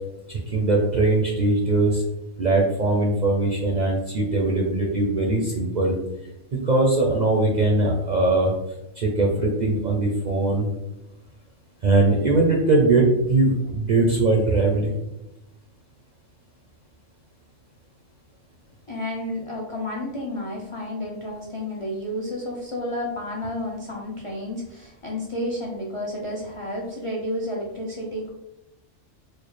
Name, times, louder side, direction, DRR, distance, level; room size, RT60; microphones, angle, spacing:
voice 1, 0.3-2.0 2.4-5.9 6.5-8.5 9.0-10.7 11.8-14.9, right 2 dB, 55° right, -1 dB, 0.5 m, -21 dB
voice 2, 18.9-28.3, left 1 dB, 50° left, -2 dB, 0.4 m, -31 dB
4.5 x 2.1 x 3.2 m, 0.90 s
omnidirectional pair, 1.3 m